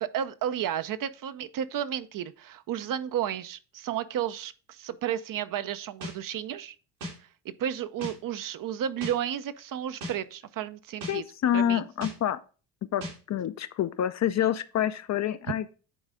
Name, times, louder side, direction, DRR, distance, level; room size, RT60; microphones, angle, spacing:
voice 1, 0.0-6.8 7.4-11.2 11.5-11.8, right 10 dB, 45° right, 0.6 m, -32 dB
sound 1, 6.0-6.2 7.0-7.2 8.0-8.2 9.0-9.2 10.0-10.2 11.0-11.2 12.0-12.2 13.0-13.2, equal, 85° right, 3.3 m, -36 dB
voice 2, 11.1-12.4 12.8-15.7, left 10 dB, 40° left, 0.5 m, -27 dB
10.0 x 4.0 x 3.6 m
hypercardioid pair, 65°, 44 cm